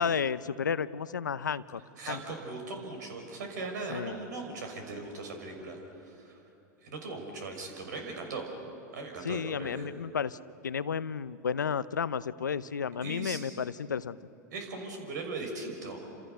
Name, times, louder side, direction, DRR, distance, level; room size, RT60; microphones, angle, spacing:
voice 1, 0.0-1.8 2.1-2.2 3.9-4.2 9.2-10.4 10.6-14.2, left 6 dB, 90° left, 16 dB, 0.7 m, -32 dB
voice 2, 2.0-6.4 6.8-8.5 8.9-9.9 13.0-13.4 14.5-16.1, right 3 dB, 75° right, 3 dB, 6.1 m, -39 dB
29.5 x 27.5 x 6.9 m, 2.9 s
hypercardioid pair, 95°, 10 cm